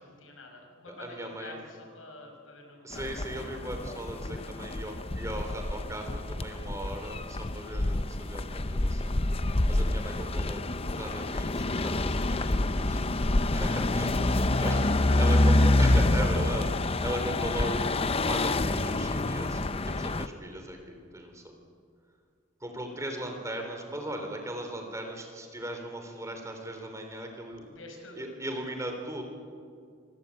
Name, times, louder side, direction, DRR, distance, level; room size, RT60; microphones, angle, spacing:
voice 1, 0.0-3.5 14.5-15.9 27.7-28.7, left 1 dB, 85° left, 3 dB, 6.0 m, -45 dB
voice 2, 0.9-1.6 2.8-9.1 9.7-13.0 13.5-14.8 15.2-16.7 17.0-21.4 22.6-27.7 28.2-29.2, right 1 dB, 15° right, 4 dB, 3.4 m, -38 dB
sound 1, 2.9-20.3, left 2 dB, 30° left, 0.7 m, -27 dB
26.5 x 24.5 x 8.5 m, 2.3 s
head